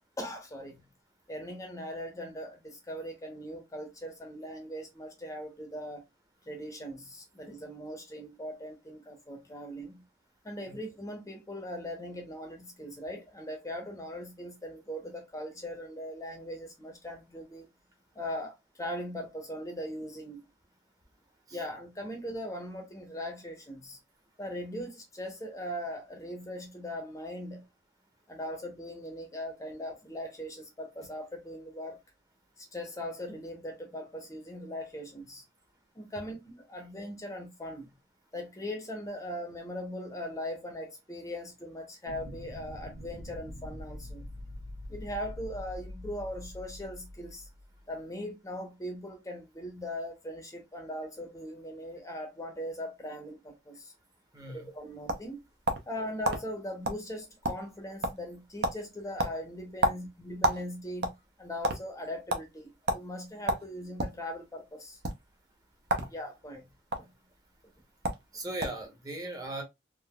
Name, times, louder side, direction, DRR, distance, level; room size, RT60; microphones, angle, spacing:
voice 1, 0.2-0.9 1.3-6.0 6.5-10.0 10.4-17.7 18.1-20.4 21.5-24.0 24.4-27.6 28.3-32.0 32.6-35.4 35.9-37.9 38.3-44.2 44.9-47.5 47.9-53.9 54.5-55.4 55.9-65.0 66.1-66.7 67.0-67.1, equal, 20° left, 0.6 m, -40 dB
sound 1, 42.1-47.8, left 1 dB, 85° right, 1.1 m, -44 dB
voice 2, 54.3-54.7 65.9-66.1 68.3-69.6, right 1 dB, 20° right, 0.8 m, -38 dB
sound 2, 54.5-55.9 56.2-56.4 56.8-57.0 57.3-57.8 58.0-58.3 58.6-58.8 59.2-60.6 60.9-61.8 62.3-62.4 62.9-63.0 63.5-64.2 64.9-65.1 65.8-66.1 66.4-67.0 67.7-67.8 68.0-68.2 68.6-68.9, right 1 dB, 60° right, 0.6 m, -29 dB
3.5 x 2.5 x 2.2 m
head